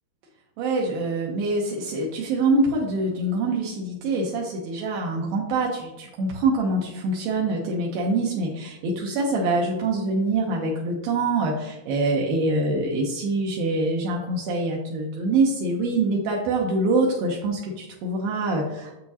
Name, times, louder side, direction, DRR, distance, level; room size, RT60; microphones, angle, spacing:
voice 1, 0.6-18.9, right 2 dB, 80° right, -2 dB, 2.1 m, -25 dB
8.3 x 6.8 x 2.8 m, 0.96 s
omnidirectional pair, 5.4 m